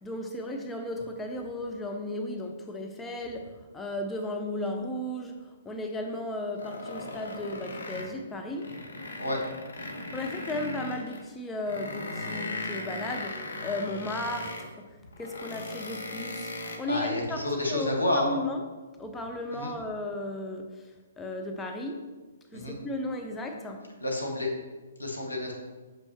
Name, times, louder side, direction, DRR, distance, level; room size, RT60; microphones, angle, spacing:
voice 1, 0.0-3.5 3.7-5.3 5.7-8.7 10.1-14.7 15.2-16.5 16.8-17.4 17.7-18.6 19.0-20.7 21.2-22.0 22.5-23.8, left 1 dB, 10° left, 3 dB, 0.5 m, -35 dB
sound 1, 6.6-8.2 8.5-11.3 11.7-14.7 15.1-16.8, left 2 dB, 65° left, 0.9 m, -38 dB
voice 2, 16.9-18.4 19.5-19.7 22.5-22.8 24.0-24.5 25.0-25.5, left 1 dB, 85° left, 0 dB, 1.4 m, -29 dB
6.9 x 5.4 x 2.9 m, 1.3 s
figure-of-eight pair, 125°, 0 cm